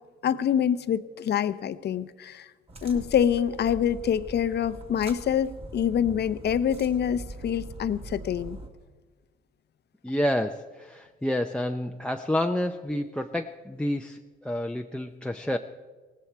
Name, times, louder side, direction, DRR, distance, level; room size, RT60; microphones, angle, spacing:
voice 1, 0.2-2.5 2.8-8.6, left 9 dB, 55° left, 14 dB, 0.7 m, -26 dB
sound 1, 2.7-8.7, right 2 dB, 30° right, 2.0 m, -42 dB
voice 2, 10.0-15.6, left 1 dB, 5° left, 7 dB, 0.6 m, -29 dB
18.0 x 16.0 x 4.6 m, 1.3 s
cardioid pair, 90°, 20 cm